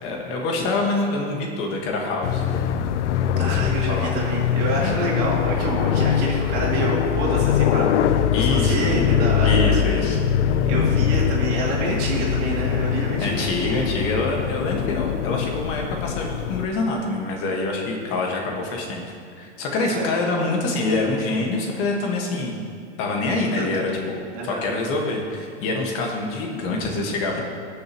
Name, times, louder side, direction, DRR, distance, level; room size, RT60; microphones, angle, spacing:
voice 1, 0.0-2.5 3.4-4.1 4.8-5.0 8.3-8.9 9.4-10.2 10.5-10.7 13.2-19.0 19.4-22.6 23.0-27.4, left 2 dB, 40° left, 0 dB, 1.6 m, -26 dB
sound 1, 2.2-16.6, left 8 dB, 85° left, 0.6 m, -22 dB
voice 2, 3.4-8.0 8.4-9.8 10.7-13.6 19.9-20.2 23.5-23.7 24.3-24.7, right 2 dB, 40° right, -3 dB, 2.6 m, -28 dB
18.5 x 6.7 x 3.0 m, 2.2 s
supercardioid pair, 135°, 35 cm